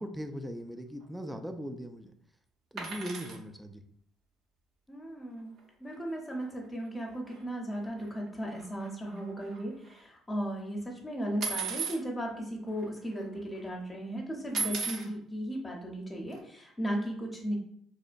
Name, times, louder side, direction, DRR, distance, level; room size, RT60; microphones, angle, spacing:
voice 1, 0.0-2.1 2.7-3.8, equal, 5° right, 6 dB, 0.3 m, -39 dB
sound 1, 2.8-3.4 5.6-5.7 5.9-6.1 6.4-6.5 7.3-7.4 7.9-10.0 11.4-12.0 12.8-12.9 13.1-13.6 14.5-15.1 16.3-16.4, right 5 dB, 65° right, 0.7 m, -36 dB
voice 2, 4.9-5.5 5.8-17.6, equal, 20° left, 0 dB, 0.7 m, -36 dB
2.8 x 2.1 x 2.5 m, 0.69 s
supercardioid pair, 70°, 0 cm